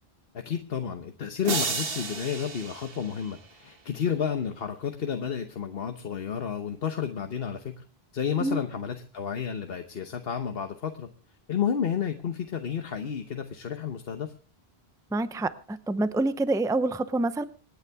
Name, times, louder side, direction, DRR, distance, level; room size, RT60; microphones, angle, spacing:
voice 1, 0.3-7.8 8.1-11.1 11.5-14.3, left 7 dB, 70° left, 7 dB, 1.2 m, -31 dB
sound 1, 1.4-3.7, right 5 dB, 70° right, 1.4 m, -33 dB
voice 2, 15.1-17.4, right 2 dB, 5° right, 12 dB, 0.6 m, -27 dB
26.5 x 9.7 x 3.5 m, 0.37 s
omnidirectional pair, 1.0 m